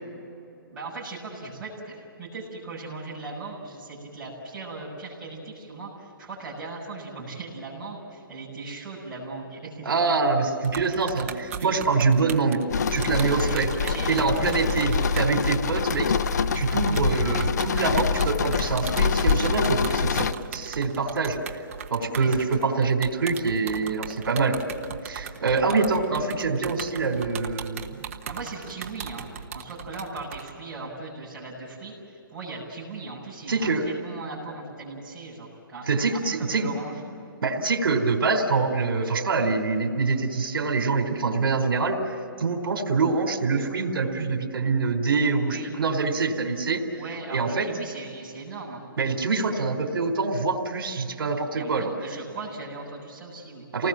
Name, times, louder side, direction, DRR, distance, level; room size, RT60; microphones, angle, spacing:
voice 1, 0.7-9.8 10.9-11.0 11.5-11.8 13.3-15.5 22.1-22.6 25.7-25.8 28.3-29.3 29.5-31.9 32.3-37.0 45.5-45.7 47.0-48.8 51.5-53.6, right 3 dB, 5° right, -10 dB, 6.8 m, -38 dB
voice 2, 9.9-12.6 12.9-13.7 14.1-16.1 16.5-21.4 21.9-24.6 25.0-28.1 33.5-33.8 35.9-36.7 37.4-46.8 47.3-47.7 49.0-51.9 53.7-53.9, right 4 dB, 70° right, 3 dB, 4.0 m, -25 dB
sound 1, 10.6-15.3 15.6-15.7 15.9-30.5, right 8 dB, 35° right, 1.2 m, -38 dB
sound 2, 12.7-20.3, left 5 dB, 50° left, 0.7 m, -25 dB
29.0 x 20.0 x 7.6 m, 2.7 s
hypercardioid pair, 175°, 12 cm